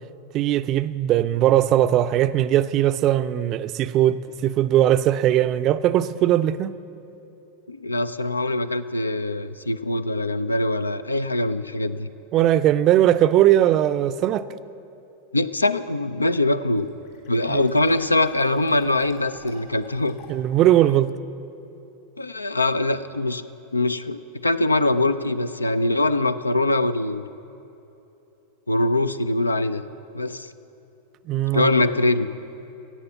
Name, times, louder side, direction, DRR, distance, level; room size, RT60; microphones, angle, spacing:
voice 1, 0.3-6.7 12.3-14.5 17.5-17.6 20.3-21.1 31.3-31.7, right 12 dB, 40° right, 0.4 m, -19 dB
voice 2, 7.7-12.1 15.3-16.9 17.3-20.2 22.2-23.4 23.7-27.2 28.7-29.8 30.1-30.5 31.5-32.3, left 2 dB, 90° left, 0.4 m, -23 dB
Fill (with liquid), 16.6-20.6, left 6 dB, 60° left, 3.1 m, -50 dB
14.5 x 8.6 x 7.0 m
figure-of-eight pair, 90°, 0 cm